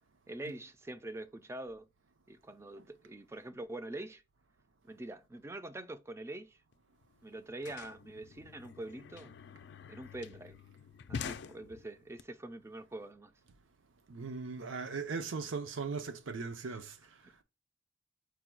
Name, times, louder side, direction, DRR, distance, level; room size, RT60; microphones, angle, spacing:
voice 1, 0.3-1.9 2.3-4.2 4.8-6.6 7.2-9.3 9.9-10.6 11.1-13.3 16.7-16.8 17.2-17.4, right 1 dB, 15° right, 0.3 m, -44 dB
sound 1, 6.7-6.8 7.0-12.2, left 6 dB, 60° left, 0.4 m, -46 dB
voice 2, 14.1-17.4, right 4 dB, 85° right, 0.6 m, -39 dB
4.6 x 2.3 x 4.5 m
head